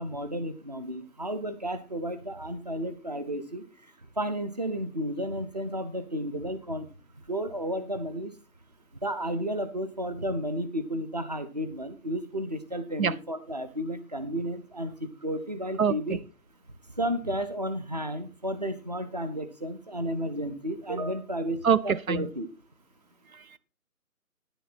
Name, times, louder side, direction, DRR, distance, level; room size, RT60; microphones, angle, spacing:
voice 1, 0.0-3.6 4.2-6.9 7.3-8.3 9.0-16.2 17.0-22.5, equal, 30° right, 10 dB, 0.8 m, -32 dB
voice 2, 21.6-22.3 23.3-23.6, right 7 dB, 70° right, 17 dB, 0.7 m, -24 dB
10.0 x 9.1 x 4.2 m, 0.32 s
figure-of-eight pair, 175°, 43 cm